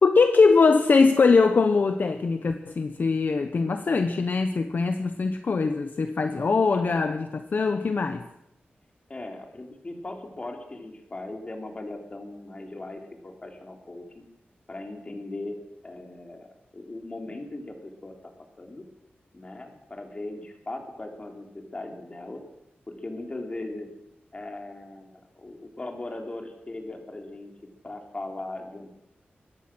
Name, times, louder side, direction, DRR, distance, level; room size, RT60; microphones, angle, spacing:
voice 1, 0.0-8.3, left 4 dB, 55° left, 8 dB, 1.1 m, -22 dB
voice 2, 9.1-14.3 14.7-15.6 15.8-16.5 16.7-18.3 18.6-18.8 19.3-22.4 22.9-23.9 24.3-27.5 27.8-28.9, left 2 dB, 30° left, 3 dB, 3.7 m, -38 dB
23.0 x 18.5 x 6.3 m, 0.82 s
wide cardioid pair, 140°, 4 cm